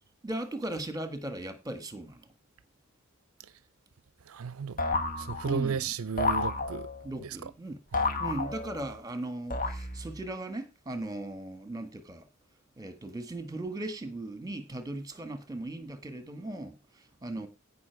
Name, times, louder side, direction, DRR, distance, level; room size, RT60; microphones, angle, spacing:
voice 1, 0.2-2.3 5.4-5.9 7.0-7.8 8.2-12.3 12.8-17.5, right 1 dB, 15° right, 1.7 m, -37 dB
voice 2, 4.3-4.8 5.2-6.9 7.9-8.1, right 6 dB, 65° right, 0.5 m, -33 dB
sound 1, 4.8-5.7 6.2-7.1 7.9-9.0 9.5-10.2, left 3 dB, 40° left, 1.8 m, -31 dB
16.5 x 5.8 x 4.6 m
head